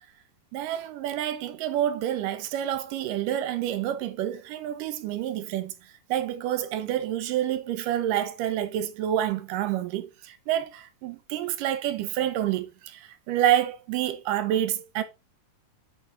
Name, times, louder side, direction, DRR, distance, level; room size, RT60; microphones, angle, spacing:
voice 1, 0.5-5.7 6.1-15.0, right 11 dB, 75° right, 2.3 m, -28 dB
8.4 x 4.4 x 3.8 m
omnidirectional pair, 4.0 m